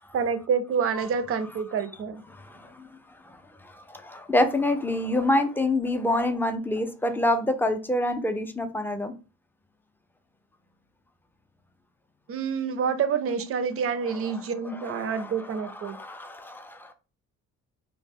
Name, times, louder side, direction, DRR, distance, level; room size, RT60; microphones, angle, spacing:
voice 1, 0.1-2.2 12.3-16.0, right 6 dB, 50° right, 0.5 m, -27 dB
voice 2, 2.3-2.9 3.3-3.4 3.6-9.1 14.1-14.4 14.8-15.3 15.6-16.9, left 1 dB, 5° left, 0.4 m, -27 dB
2.1 x 2.0 x 3.4 m
cardioid pair, 90°, 30 cm